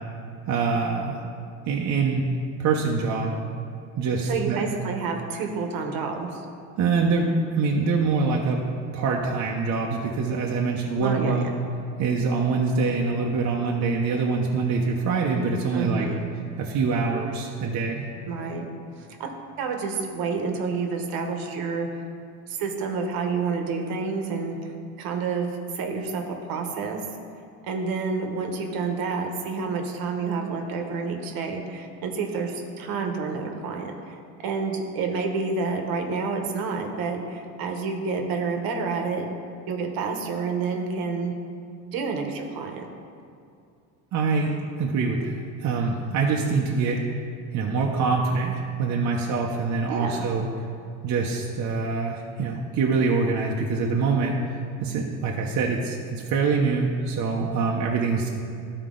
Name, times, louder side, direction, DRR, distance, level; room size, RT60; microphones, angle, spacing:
voice 1, 0.5-1.2 1.7-2.3 2.6-3.4 4.0-4.6 6.8-8.6 8.9-11.5 12.0-16.1 16.6-18.1 44.1-47.0 47.5-50.5 51.0-54.4 54.8-58.3, right 4 dB, 50° right, -1 dB, 0.8 m, -24 dB
voice 2, 4.2-6.5 11.0-11.5 15.7-16.2 18.3-18.7 19.0-19.3 19.6-22.0 22.5-24.7 25.0-25.5 25.7-27.0 27.6-34.2 34.4-39.3 39.7-41.3 41.9-42.8 49.9-50.3, right 4 dB, 65° right, 3 dB, 1.1 m, -29 dB
12.0 x 4.5 x 3.8 m, 2.4 s
cardioid pair, 120°, 38 cm